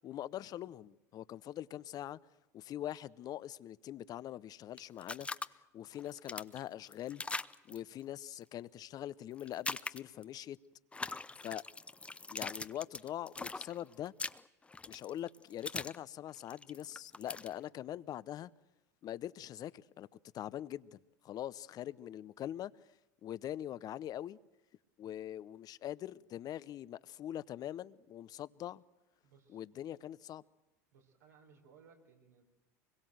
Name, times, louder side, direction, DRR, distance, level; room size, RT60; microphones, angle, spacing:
voice 1, 0.0-2.2 2.5-5.3 5.7-7.2 7.7-10.6 11.4-11.6 12.3-14.1 14.9-18.5 19.0-20.1 20.3-21.0 21.2-22.7 23.2-24.4 25.0-28.8 29.5-30.4, left 12 dB, 45° left, 0.8 m, -43 dB
sound 1, 4.8-5.5 5.9-7.8 9.4-10.2 10.9-16.0 16.3-17.5, left 3 dB, 15° left, 0.7 m, -41 dB
voice 2, 29.2-29.6 30.9-32.4, right 6 dB, 85° right, 4.8 m, -63 dB
24.5 x 21.5 x 7.9 m
hypercardioid pair, 85°, 9 cm